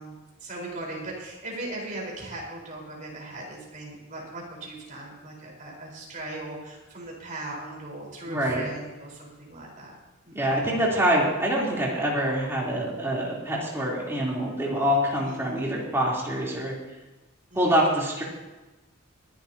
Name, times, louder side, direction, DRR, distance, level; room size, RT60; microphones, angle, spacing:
voice 1, 0.0-10.0 10.2-10.6 15.3-15.7 17.5-18.0, right 2 dB, 35° right, -2 dB, 4.4 m, -39 dB
voice 2, 8.3-8.6 10.3-16.7 17.6-18.2, equal, 10° right, -5 dB, 3.4 m, -25 dB
23.5 x 11.5 x 2.9 m, 1.1 s
head